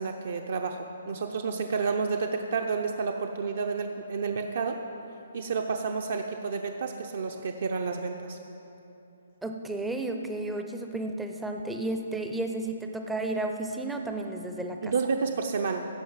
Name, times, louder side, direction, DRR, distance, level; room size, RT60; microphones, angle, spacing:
voice 1, 0.0-4.8 5.3-8.4 14.8-15.9, right 5 dB, 55° right, 4 dB, 0.7 m, -30 dB
voice 2, 9.4-14.9, right 2 dB, 5° right, 4 dB, 0.5 m, -32 dB
16.0 x 5.8 x 7.3 m, 2.9 s
hypercardioid pair, 170°, 0 cm